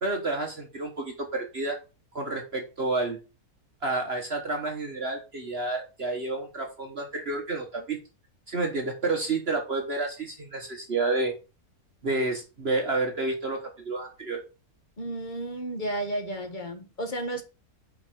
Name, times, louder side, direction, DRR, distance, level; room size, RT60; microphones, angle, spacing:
voice 1, 0.0-1.8 2.1-3.2 3.8-8.0 8.5-11.4 12.0-14.4, right 3 dB, 40° right, 1.5 m, -30 dB
voice 2, 15.0-17.4, right 1 dB, 30° left, 1.6 m, -32 dB
5.7 x 5.4 x 6.2 m
omnidirectional pair, 1.6 m